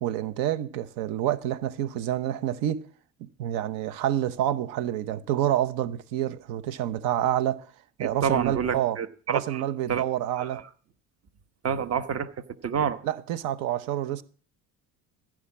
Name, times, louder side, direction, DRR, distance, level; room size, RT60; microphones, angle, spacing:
voice 1, 0.0-2.8 3.2-7.7 8.0-9.0 9.3-10.6 13.0-14.2, right 12 dB, 85° right, 0.9 m, -28 dB
voice 2, 8.0-9.6 9.9-10.0 10.4-10.6 11.6-12.3 12.6-13.0, right 7 dB, 45° right, 1.2 m, -28 dB
14.5 x 5.0 x 8.4 m
supercardioid pair, 85°, 34 cm